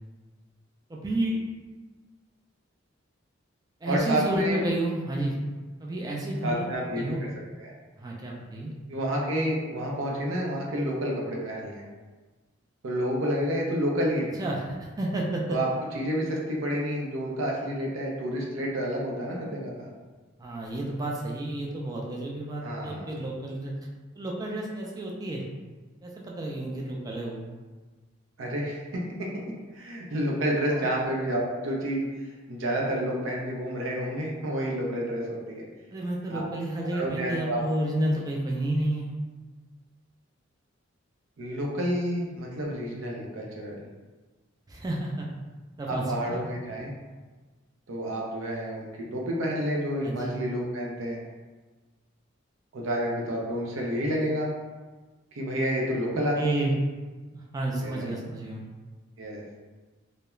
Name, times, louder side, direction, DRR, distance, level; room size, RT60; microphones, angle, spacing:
voice 1, 0.9-1.4 3.8-5.4 5.8-6.7 6.9-7.2 8.0-8.7 14.4-15.4 20.4-23.7 24.1-25.4 26.0-27.4 30.7-30.9 35.9-39.1 44.7-45.3 45.8-46.5 50.0-50.4 56.1-56.7 57.3-58.7, right 1 dB, 20° right, -2 dB, 0.3 m, -31 dB
voice 2, 3.9-4.6 6.4-7.3 7.6-7.7 8.9-11.8 12.8-14.3 15.5-15.7 15.9-19.9 22.6-23.1 28.4-29.3 29.7-32.0 32.5-35.6 36.3-36.4 36.9-37.6 41.4-43.9 45.9-46.9 47.9-51.2 52.7-54.5 55.3-56.6 57.8-58.1 59.2-59.4, equal, 75° right, -2 dB, 0.5 m, -29 dB
2.3 x 2.0 x 3.0 m, 1.3 s
head